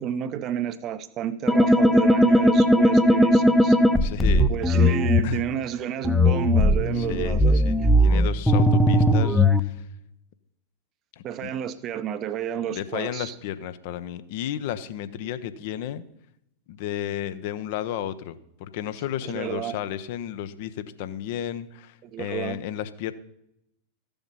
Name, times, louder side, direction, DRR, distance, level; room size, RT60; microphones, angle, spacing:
voice 1, 0.0-3.8 4.5-7.9 11.2-13.3 19.2-19.8 22.0-22.6, right 9 dB, 35° right, 14 dB, 0.8 m, -30 dB
sound 1, 1.5-5.2 6.0-9.6, left 1 dB, ahead, 0.8 m, -18 dB
voice 2, 4.0-4.5 5.2-5.4 7.0-9.8 11.2-11.5 12.6-16.0 16.7-23.1, left 11 dB, 50° left, 13 dB, 0.8 m, -33 dB
14.5 x 7.1 x 5.5 m, 0.77 s
figure-of-eight pair, 90°, 0 cm